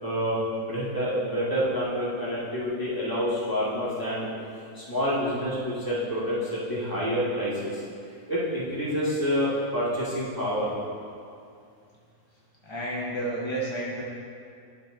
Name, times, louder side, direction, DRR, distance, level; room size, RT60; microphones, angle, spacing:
voice 1, 0.0-4.3 4.7-7.8 8.3-10.7, equal, 15° left, -10 dB, 2.0 m, -28 dB
voice 2, 12.6-14.0, right 1 dB, 35° left, -4 dB, 0.5 m, -31 dB
11.0 x 4.7 x 3.8 m, 2.4 s
omnidirectional pair, 1.6 m